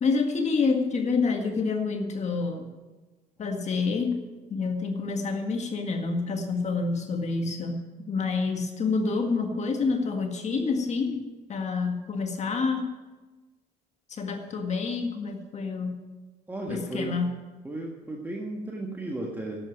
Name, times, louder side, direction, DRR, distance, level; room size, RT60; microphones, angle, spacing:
voice 1, 0.0-2.7 3.4-4.2 4.5-11.2 11.5-12.9 14.1-16.0 16.7-17.3, left 4 dB, 40° left, 3 dB, 1.8 m, -28 dB
voice 2, 16.5-17.2 17.6-19.7, right 1 dB, 10° right, 0 dB, 1.7 m, -34 dB
11.0 x 9.0 x 9.2 m, 1.2 s
cardioid pair, 110°, 17 cm